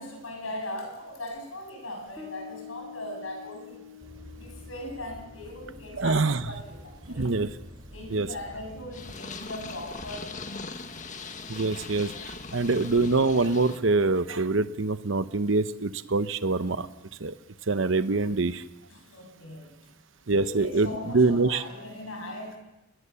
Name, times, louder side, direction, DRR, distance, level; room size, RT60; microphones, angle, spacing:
voice 1, 0.0-3.8 4.4-7.3 7.9-10.7 12.5-12.7 18.9-19.7 20.3-22.6, left 1 dB, 80° left, 3 dB, 7.6 m, -39 dB
Bass guitar, 2.2-9.3, left 8 dB, 5° right, 5.5 m, -49 dB
sound 1, 4.0-9.2, equal, 20° right, 4.5 m, -47 dB
voice 2, 6.0-6.4 7.2-7.5 8.1-8.3 11.5-12.1 12.5-16.9 17.2-17.3 17.7-18.6 20.3-21.6, right 3 dB, 70° right, 12 dB, 0.9 m, -24 dB
Purr, 8.9-13.8, left 4 dB, 40° left, 1.6 m, -40 dB
29.5 x 20.0 x 7.0 m, 0.94 s
head